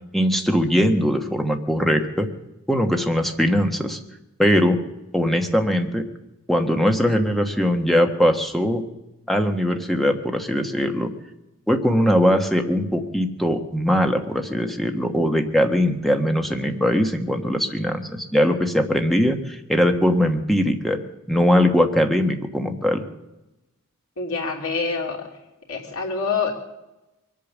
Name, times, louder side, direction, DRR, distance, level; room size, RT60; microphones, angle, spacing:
voice 1, 0.1-2.3 2.7-4.0 4.4-4.8 5.1-6.1 6.5-8.8 9.3-11.1 11.7-21.0 21.3-23.0, equal, ahead, 5 dB, 1.2 m, -21 dB
voice 2, 24.2-25.3 25.7-26.6, left 4 dB, 75° left, 0 dB, 3.2 m, -26 dB
23.0 x 8.6 x 7.3 m, 0.99 s
head